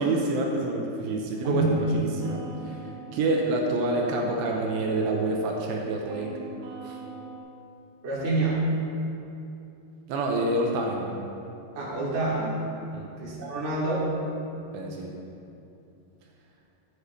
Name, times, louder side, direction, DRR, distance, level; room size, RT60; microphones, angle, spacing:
voice 1, 0.0-1.6 2.0-2.9 3.1-6.4 6.8-7.0 10.1-11.2 12.9-13.1 14.7-15.1, right 2 dB, 85° right, 0 dB, 2.8 m, -27 dB
sound 1, 1.3-7.4, right 4 dB, 70° right, 2.9 m, -42 dB
voice 2, 1.4-1.8 8.0-8.6 11.7-12.6 13.2-14.1, right 2 dB, 30° right, -9 dB, 1.3 m, -27 dB
11.5 x 8.2 x 3.1 m, 2.7 s
omnidirectional pair, 5.3 m